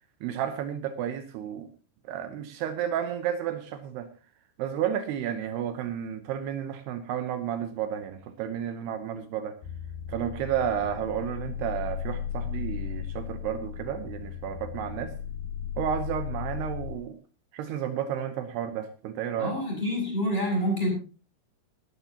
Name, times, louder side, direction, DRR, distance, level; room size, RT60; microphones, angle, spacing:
voice 1, 0.2-1.7 2.1-4.1 4.6-9.6 10.1-15.1 15.8-17.1 17.5-19.5, right 9 dB, 80° right, 9 dB, 2.9 m, -32 dB
sound 1, 9.6-17.0, left 9 dB, 70° left, 3.9 m, -36 dB
voice 2, 19.4-20.9, equal, 10° left, -1 dB, 7.3 m, -27 dB
19.0 x 13.0 x 2.9 m, 0.35 s
omnidirectional pair, 4.9 m